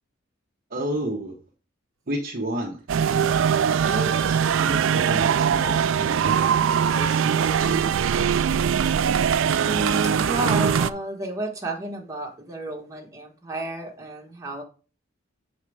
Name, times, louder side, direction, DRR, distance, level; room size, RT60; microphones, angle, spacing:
voice 1, 0.7-1.3 2.1-2.8 3.8-8.0, right 1 dB, 45° right, 0 dB, 0.9 m, -31 dB
Computer keyboard, 2.6-2.7 3.0-5.0 5.7-5.9 6.2-6.3 6.9-8.2 8.6-10.9, right 6 dB, 80° right, 0.8 m, -36 dB
sound 1, 2.9-10.9, right 7 dB, 65° right, 0.3 m, -21 dB
voice 2, 9.6-14.6, right 1 dB, 15° right, -1 dB, 1.6 m, -31 dB
7.2 x 4.4 x 4.7 m, 0.36 s
head